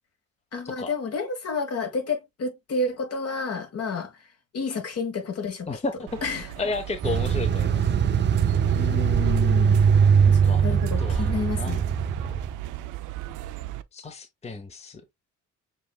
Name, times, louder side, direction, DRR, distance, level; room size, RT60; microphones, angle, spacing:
voice 1, 0.5-4.3 4.5-5.7 6.2-6.5 8.7-9.8 10.3-11.8, left 3 dB, 55° left, 1.6 m, -30 dB
voice 2, 5.7-6.2 6.6-7.9 10.4-10.6 11.0-11.3 11.6-12.4 13.9-15.0, left 3 dB, 20° left, 0.8 m, -33 dB
sound 1, 6.1-13.8, right 14 dB, 90° right, 0.6 m, -36 dB
sound 2, 7.0-12.5, right 7 dB, 35° right, 0.6 m, -21 dB
7.1 x 3.0 x 2.3 m
cardioid pair, 90°, 30 cm